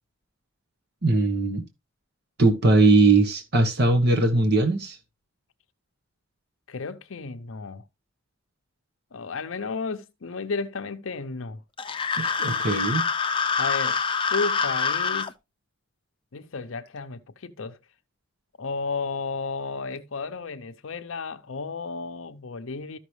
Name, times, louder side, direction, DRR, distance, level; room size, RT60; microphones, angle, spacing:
voice 1, 1.0-1.6 2.4-5.0 12.2-13.1, right 2 dB, 55° right, 1.2 m, -20 dB
voice 2, 6.7-7.8 9.1-11.6 13.6-14.0 14.3-15.3 16.3-17.8 18.6-23.0, left 4 dB, 70° left, 0.6 m, -33 dB
sound 1, 11.8-15.3, left 5 dB, 25° left, 0.6 m, -26 dB
13.5 x 5.8 x 3.2 m
head